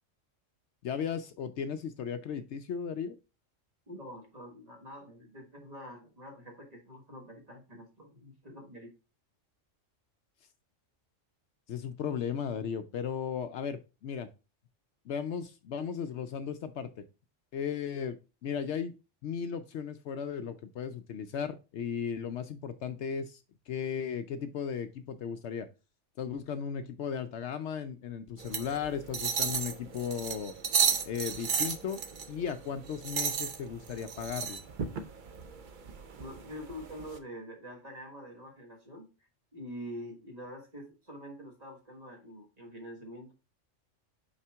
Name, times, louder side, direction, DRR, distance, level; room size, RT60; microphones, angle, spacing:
voice 1, 0.8-3.2 11.7-14.3 15.1-17.0 17.5-18.2 18.4-18.9 19.2-23.4 23.7-25.7 26.2-30.5 31.0-32.0 32.3-34.6, left 7 dB, 70° left, 10 dB, 0.8 m, -36 dB
voice 2, 3.9-8.9 36.2-39.1 39.5-43.3, equal, 30° right, 1 dB, 1.5 m, -46 dB
sound 1, 28.4-37.2, right 6 dB, 50° right, 0.7 m, -34 dB
5.7 x 4.9 x 3.4 m, 0.30 s
omnidirectional pair, 1.3 m